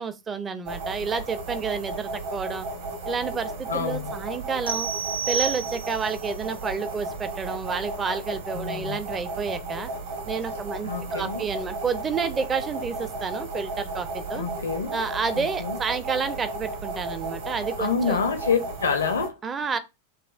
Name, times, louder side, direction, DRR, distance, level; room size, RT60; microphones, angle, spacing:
voice 1, 0.0-2.7 3.1-4.9 5.3-9.9 10.3-14.5 14.9-18.2 19.4-19.8, right 5 dB, 20° right, 0.5 m, -30 dB
sound 1, 0.7-19.3, right 2 dB, 60° right, 1.3 m, -34 dB
voice 2, 3.7-4.1 8.5-9.0 10.8-11.4 14.4-15.0 15.4-15.8 17.8-19.4, left 5 dB, 70° left, 0.5 m, -27 dB
sound 2, 4.7-6.2, right 7 dB, 80° right, 0.5 m, -29 dB
6.3 x 2.3 x 2.4 m
figure-of-eight pair, 90°, 0 cm